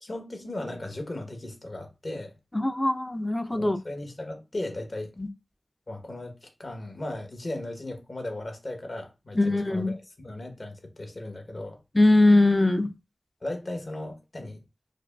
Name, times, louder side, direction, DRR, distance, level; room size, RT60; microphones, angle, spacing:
voice 1, 0.0-2.3 3.5-5.1 5.9-11.8 13.4-14.6, left 1 dB, 50° left, 0.8 m, -37 dB
voice 2, 2.5-3.8 5.2-5.3 9.4-9.9 11.9-12.9, left 2 dB, 20° left, 0.3 m, -21 dB
4.8 x 2.2 x 2.2 m
wide cardioid pair, 60°, 0 cm